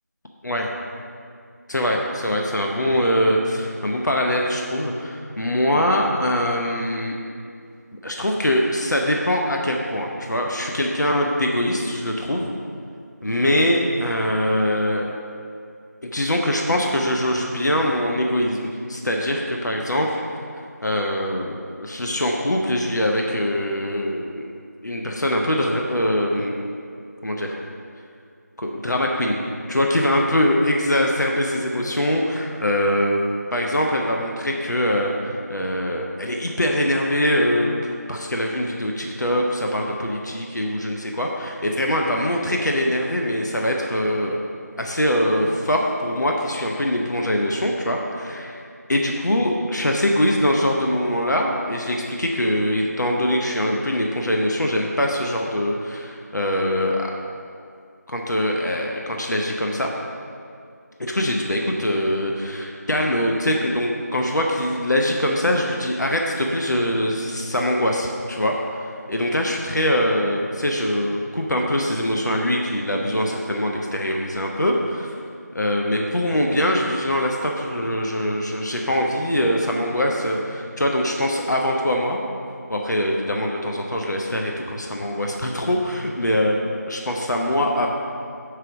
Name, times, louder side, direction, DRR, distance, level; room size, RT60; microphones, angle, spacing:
voice 1, 1.7-7.2 8.0-12.5 13.2-15.2 16.0-20.2 20.8-24.6 24.8-26.6 27.2-27.6 28.6-33.2 33.5-44.4 44.8-48.6 48.9-57.2 58.1-59.9 61.0-75.1 75.5-82.2 82.7-87.9, left 1 dB, 80° left, 0 dB, 0.7 m, -23 dB
5.8 x 4.9 x 4.9 m, 2.3 s
figure-of-eight pair, 175°, 10 cm